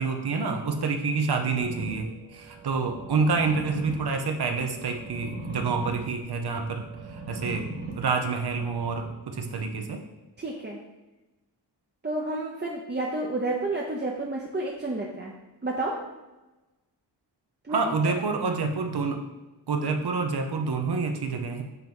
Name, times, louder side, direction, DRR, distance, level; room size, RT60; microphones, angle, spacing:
voice 1, 0.0-7.7 7.9-10.0 17.7-19.2 19.7-21.6, right 4 dB, 60° right, 4 dB, 0.8 m, -28 dB
sound 1, 1.6-9.6, right 2 dB, 80° right, 1.3 m, -40 dB
voice 2, 10.4-10.8 12.0-15.3 15.6-16.1 17.6-17.9 18.3-18.4, right 2 dB, 25° right, -2 dB, 0.8 m, -30 dB
5.8 x 3.0 x 5.3 m, 1.1 s
cardioid pair, 60°, 43 cm